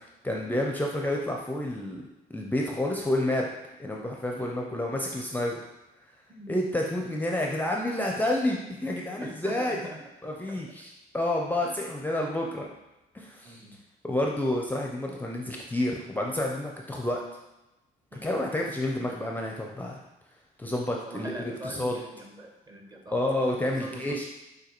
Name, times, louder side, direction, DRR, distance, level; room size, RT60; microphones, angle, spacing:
voice 1, 0.2-2.0 2.3-3.5 3.8-5.6 6.5-9.8 10.2-12.7 13.1-13.6 14.0-17.2 18.2-20.0 20.6-22.0 23.1-24.2, left 1 dB, 10° left, -1 dB, 0.5 m, -29 dB
voice 2, 4.3-4.9 6.3-6.6 9.2-10.0 10.5-10.6 11.6-11.8 13.4-13.8 18.1-18.5 21.1-24.2, right 1 dB, 25° right, 2 dB, 0.8 m, -43 dB
6.4 x 2.7 x 3.0 m, 0.97 s
cardioid pair, 110°, 17 cm